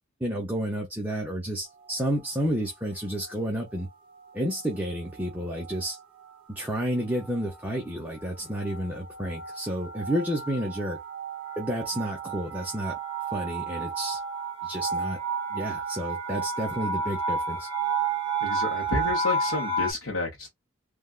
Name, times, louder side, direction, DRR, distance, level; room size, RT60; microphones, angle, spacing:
voice 1, 0.2-3.9 4.3-6.0 6.5-11.0 11.6-13.0 13.3-14.2 14.6-15.2 15.5-17.7, equal, 10° right, 0.6 m, -30 dB
sound 1, 1.8-2.3 3.0-3.4 3.7-19.9, right 4 dB, 25° right, 1.2 m, -32 dB
voice 2, 18.4-20.5, left 2 dB, 70° left, 0.8 m, -30 dB
3.4 x 2.3 x 2.3 m
head